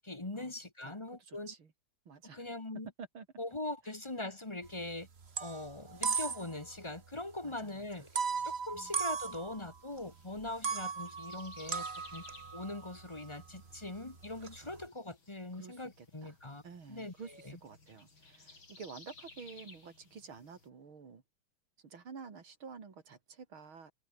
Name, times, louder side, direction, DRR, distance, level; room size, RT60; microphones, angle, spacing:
voice 1, 0.0-1.5 2.3-2.9 3.4-5.1 5.4-8.1 8.4-12.2 12.5-16.6 16.9-17.6, left 2 dB, 15° left, 1.5 m, -42 dB
voice 2, 1.2-1.7 2.1-2.5 3.0-3.3 7.4-7.8 8.7-8.9 14.6-14.8 15.5-16.3 16.6-21.2 21.8-23.9, right 5 dB, 80° right, 3.7 m, -50 dB
sound 1, 4.6-4.9 5.2-6.7 7.0-7.1 8.1-10.0 10.4-14.8, right 5 dB, 35° right, 1.5 m, -37 dB
sound 2, 9.9-20.7, left 3 dB, 70° left, 5.9 m, -58 dB
omnidirectional pair, 2.3 m